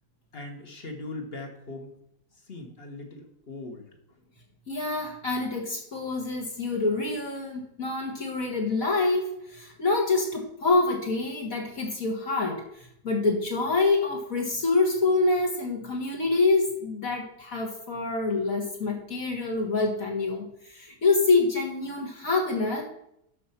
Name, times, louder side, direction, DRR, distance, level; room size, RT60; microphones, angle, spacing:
voice 1, 0.3-1.9 2.4-3.9, left 2 dB, 40° left, 3 dB, 1.5 m, -40 dB
voice 2, 4.7-12.6 13.0-22.8, left 3 dB, 55° left, -1 dB, 2.0 m, -26 dB
12.0 x 4.3 x 5.7 m, 0.73 s
omnidirectional pair, 1.8 m